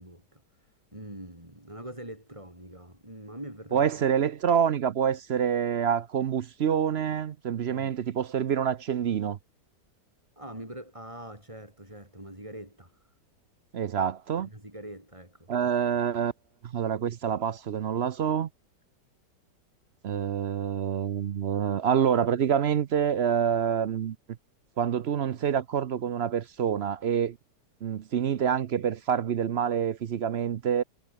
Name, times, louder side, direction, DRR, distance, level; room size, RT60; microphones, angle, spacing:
voice 1, 0.0-3.9 7.7-7.9 10.4-13.0 14.4-15.5, right 1 dB, 15° right, 5.8 m, -44 dB
voice 2, 3.7-9.4 13.7-14.5 15.5-16.3 16.7-18.5 20.0-24.2 24.8-27.4 27.8-30.8, right 8 dB, 65° right, 0.6 m, -27 dB
omnidirectional pair, 1.9 m